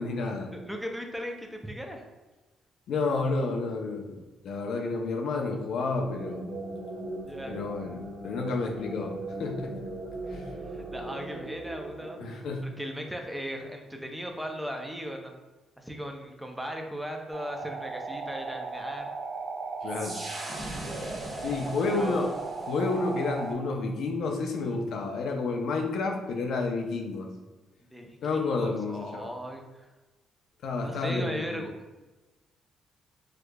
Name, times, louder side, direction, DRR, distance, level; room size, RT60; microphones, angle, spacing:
voice 1, 0.0-0.5 2.9-4.2 4.4-6.6 7.5-9.9 10.3-10.5 12.2-12.6 19.8-20.2 21.4-22.3 22.7-27.3 28.2-29.3 30.6-31.6, left 3 dB, 70° left, 2 dB, 0.5 m, -30 dB
voice 2, 0.5-2.1 7.2-7.6 10.7-12.2 12.6-15.3 15.8-19.1 21.8-22.3 27.8-29.9 30.8-31.7, equal, 5° right, 2 dB, 0.5 m, -37 dB
sound 1, 5.7-13.2, right 2 dB, 80° right, 0.6 m, -40 dB
sound 2, 17.3-23.5, right 3 dB, 35° right, 0.8 m, -36 dB
4.7 x 2.4 x 2.2 m, 1.2 s
cardioid pair, 90°, 0 cm